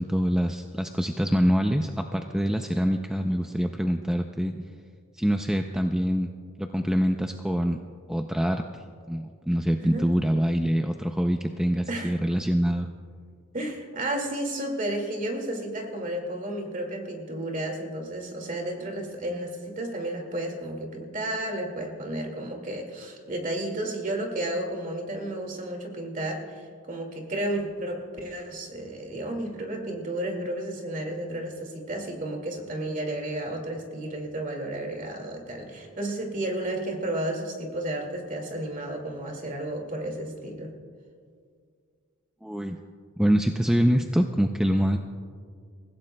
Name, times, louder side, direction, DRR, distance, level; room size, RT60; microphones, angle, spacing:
voice 1, 0.0-4.7 5.1-6.3 6.6-7.8 8.1-8.6 9.1-12.9 42.4-42.8 43.2-45.0, equal, 5° right, 4 dB, 0.4 m, -25 dB
voice 2, 13.5-40.7, right 1 dB, 40° right, 2 dB, 2.0 m, -32 dB
28.0 x 16.0 x 2.2 m, 2.1 s
head